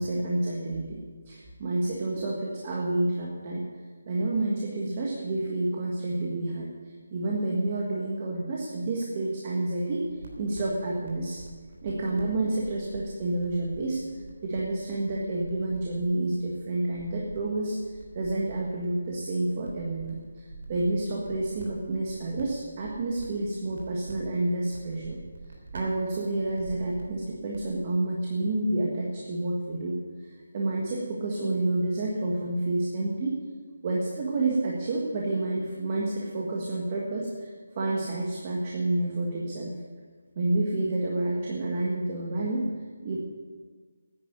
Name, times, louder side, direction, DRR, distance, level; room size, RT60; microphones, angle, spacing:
voice 1, 0.0-3.6 4.1-6.7 7.1-10.1 10.4-11.4 11.8-14.0 14.4-25.2 25.7-30.3 30.5-33.4 33.8-39.7 40.3-42.7 43.0-43.2, right 2 dB, 25° right, -3 dB, 1.5 m, -29 dB
sound 1, 9.8-27.7, right 3 dB, 60° right, 3.5 m, -46 dB
10.5 x 9.8 x 9.3 m, 1.5 s
hypercardioid pair, 175°, 0 cm